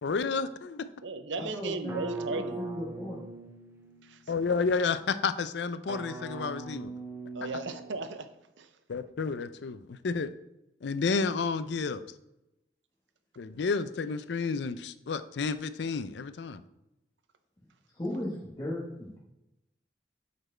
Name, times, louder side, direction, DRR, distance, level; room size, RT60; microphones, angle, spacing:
voice 1, 0.0-0.9 4.3-6.9 8.9-10.3 10.8-12.0 13.4-16.6, left 4 dB, 75° left, 13 dB, 0.4 m, -31 dB
voice 2, 1.0-2.6 4.0-4.2 7.3-8.8, right 3 dB, 90° right, 9 dB, 0.7 m, -36 dB
voice 3, 1.5-2.0 2.3-3.3 17.9-19.2, left 1 dB, 25° left, -4 dB, 1.2 m, -36 dB
sound 1, 1.9-4.3 5.9-8.2, right 3 dB, 15° right, 0.6 m, -40 dB
8.0 x 4.2 x 4.3 m, 0.89 s
head